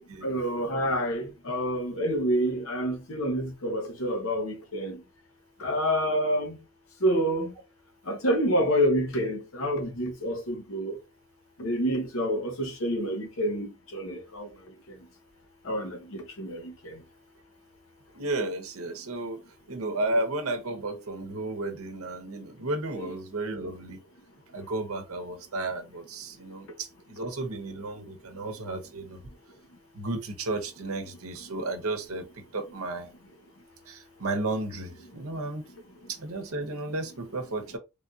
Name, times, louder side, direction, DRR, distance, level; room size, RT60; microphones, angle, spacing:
voice 1, 0.2-5.0 5.6-6.6 7.0-7.5 8.1-11.0 11.6-14.5 15.7-16.9 23.0-23.1, equal, 65° left, 0.8 m, -28 dB
voice 2, 18.1-19.4 19.7-24.0 24.5-29.2 29.9-33.1 33.8-35.6 36.1-37.8, right 2 dB, 80° right, 0.8 m, -33 dB
3.4 x 2.6 x 2.3 m
head